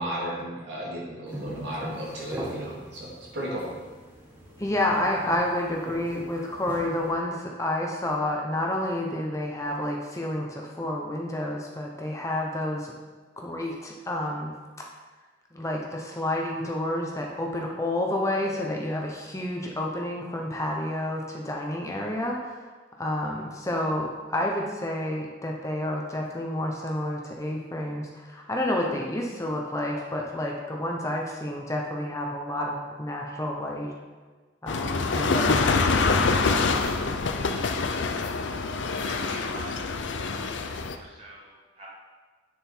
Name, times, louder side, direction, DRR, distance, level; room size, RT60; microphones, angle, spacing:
voice 1, 0.0-3.7, equal, 70° right, -5 dB, 2.8 m, -34 dB
sound 1, 1.3-7.1, right 1 dB, 10° right, 1.7 m, -41 dB
voice 2, 4.6-12.9 13.4-14.9 15.5-22.7 23.0-33.9 34.6-36.4, left 1 dB, 15° left, -1 dB, 0.9 m, -30 dB
sound 2, 34.7-41.0, left 4 dB, 75° left, 0.6 m, -25 dB
voice 3, 39.0-41.9, right 2 dB, 35° right, -5 dB, 2.4 m, -46 dB
9.3 x 6.9 x 4.6 m, 1.3 s
head